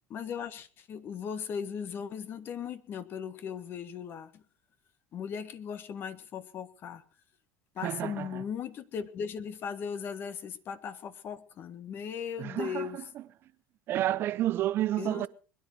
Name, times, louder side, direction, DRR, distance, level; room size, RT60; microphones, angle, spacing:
voice 1, 0.1-4.4 5.1-7.0 7.7-13.0 15.0-15.3, left 7 dB, 45° left, 1.6 m, -38 dB
voice 2, 7.8-8.3 12.4-12.9 13.9-15.3, right 13 dB, 50° right, 0.7 m, -30 dB
21.5 x 10.5 x 4.7 m
hypercardioid pair, 85°, 5 cm